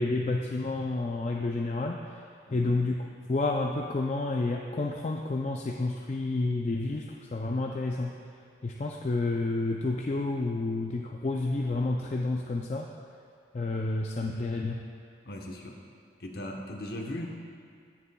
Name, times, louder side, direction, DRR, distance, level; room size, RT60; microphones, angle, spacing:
voice 1, 0.0-2.0 2.5-3.0 3.3-8.1 8.6-12.9 13.5-14.8, left 2 dB, 35° left, 0 dB, 0.4 m, -30 dB
voice 2, 2.5-2.8 15.2-15.8 16.2-17.3, left 1 dB, 55° left, 1 dB, 0.9 m, -38 dB
18.0 x 6.8 x 2.3 m, 2.2 s
head